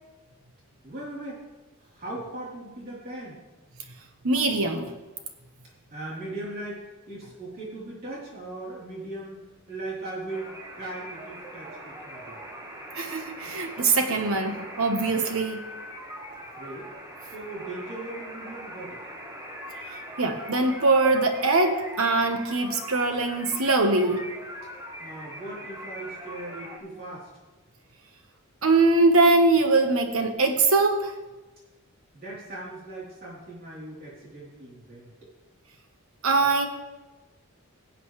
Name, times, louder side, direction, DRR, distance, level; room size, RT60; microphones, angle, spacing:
voice 1, 0.8-1.4 1.8-3.4 5.9-12.4 16.5-16.9 17.3-19.0 25.0-27.3 32.1-35.1, right 2 dB, 45° right, -6 dB, 3.6 m, -39 dB
voice 2, 4.2-4.9 12.9-15.6 20.2-24.2 28.6-31.1 36.2-36.7, right 3 dB, 70° right, 5 dB, 1.2 m, -22 dB
sound 1, 10.3-26.8, equal, 15° right, 1.5 m, -41 dB
17.0 x 7.9 x 3.3 m, 1.1 s
head